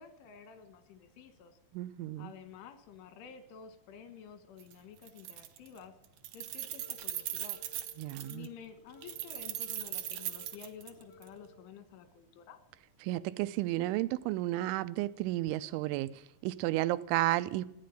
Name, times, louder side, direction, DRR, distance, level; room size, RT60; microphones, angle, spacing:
voice 1, 0.0-1.6 2.2-5.9 6.3-7.6 8.3-12.6, left 7 dB, 90° left, 4.2 m, -51 dB
voice 2, 1.7-2.3 8.0-8.5 13.0-17.7, right 16 dB, 90° right, 3.2 m, -32 dB
Keys jangling, 4.6-4.7 5.0-5.8 6.0-8.5 9.0-11.3, right 13 dB, 75° right, 2.0 m, -39 dB
sound 1, 6.6-11.6, left 2 dB, 45° left, 0.9 m, -58 dB
15.5 x 10.5 x 9.1 m
omnidirectional pair, 5.4 m